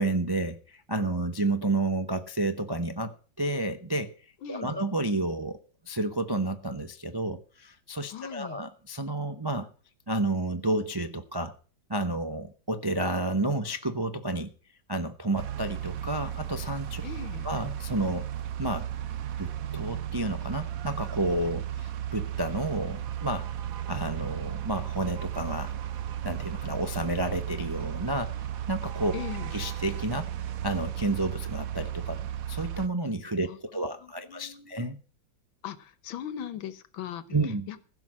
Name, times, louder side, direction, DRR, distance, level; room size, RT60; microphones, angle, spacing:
voice 1, 0.0-4.1 4.5-5.6 5.8-9.7 10.1-11.5 11.9-14.5 14.9-17.0 17.4-18.2 18.6-18.9 19.4-23.5 23.9-25.8 26.2-28.3 28.7-29.1 29.5-30.3 30.6-32.2 32.5-35.0 37.3-37.7, right 2 dB, 40° right, 7 dB, 0.3 m, -30 dB
voice 2, 4.4-4.8 8.1-8.6 17.0-17.5 29.1-29.5 33.5-34.8 35.6-37.4 37.7-37.8, left 10 dB, 90° left, 15 dB, 1.8 m, -40 dB
sound 1, 15.4-32.9, right 11 dB, 60° right, 1.0 m, -35 dB
15.5 x 6.0 x 7.4 m, 0.39 s
omnidirectional pair, 2.1 m